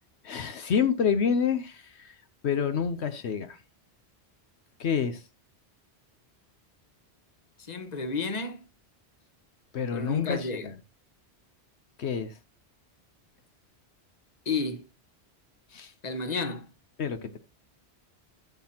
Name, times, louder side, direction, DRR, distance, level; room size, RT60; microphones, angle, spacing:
voice 1, 0.2-2.2 2.4-3.6 4.8-5.2 9.7-10.7 12.0-12.3 15.7-15.9 17.0-17.4, left 7 dB, 80° left, 1.1 m, -28 dB
voice 2, 7.6-8.6 9.9-10.7 14.4-14.9 16.0-16.7, left 4 dB, 40° left, 1.3 m, -31 dB
13.0 x 7.5 x 2.9 m
omnidirectional pair, 1.1 m